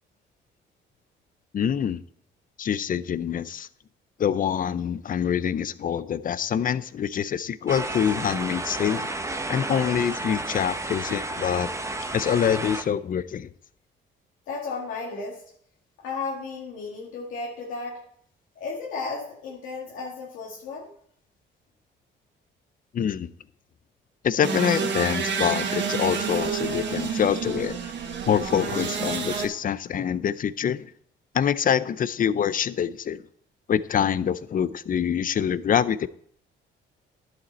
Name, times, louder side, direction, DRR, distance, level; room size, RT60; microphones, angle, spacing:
voice 1, 1.5-2.0 2.6-3.7 4.2-9.1 9.5-11.7 12.1-13.5 22.9-23.3 24.2-27.8 28.3-30.9 31.3-33.2 33.7-36.1, left 8 dB, 45° left, 0.5 m, -25 dB
sound 1, 7.7-12.8, right 2 dB, 15° right, 1.0 m, -32 dB
voice 2, 14.5-15.4 16.0-18.0 18.6-20.9, left 4 dB, 90° left, 2.2 m, -34 dB
sound 2, 24.4-29.5, right 6 dB, 65° right, 1.7 m, -29 dB
11.5 x 7.9 x 4.2 m
cardioid pair, 90°, 20 cm